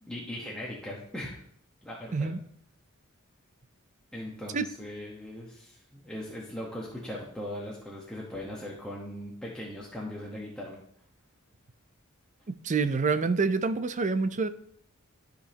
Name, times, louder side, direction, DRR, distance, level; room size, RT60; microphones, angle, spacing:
voice 1, 0.0-1.4 1.8-2.3 4.1-10.8, left 1 dB, 5° left, -4 dB, 1.1 m, -39 dB
voice 2, 12.5-14.5, right 4 dB, 35° right, 11 dB, 0.5 m, -27 dB
13.5 x 5.1 x 2.9 m, 0.63 s
head